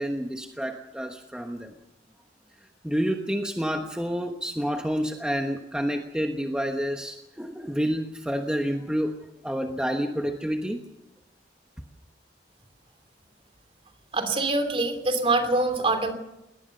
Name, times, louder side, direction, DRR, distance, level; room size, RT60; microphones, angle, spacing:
voice 1, 0.0-1.7 2.8-9.1 9.4-10.8, equal, 5° right, 3 dB, 1.2 m, -29 dB
voice 2, 14.1-16.1, right 2 dB, 30° right, 7 dB, 2.9 m, -24 dB
22.5 x 18.5 x 6.7 m, 0.91 s
head